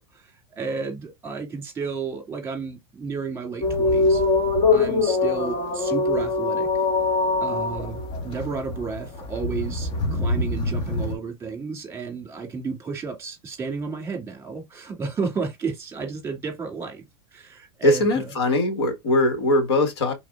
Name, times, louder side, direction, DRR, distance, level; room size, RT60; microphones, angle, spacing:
voice 1, 0.1-4.2 4.7-6.7 7.4-17.0 17.3-18.3, right 5 dB, 20° right, 2.4 m, -32 dB
sound 1, 3.6-11.1, left 3 dB, 40° left, 1.7 m, -23 dB
voice 2, 17.8-20.1, left 1 dB, 75° left, 1.5 m, -21 dB
4.8 x 4.0 x 2.4 m
hypercardioid pair, 100°, 14 cm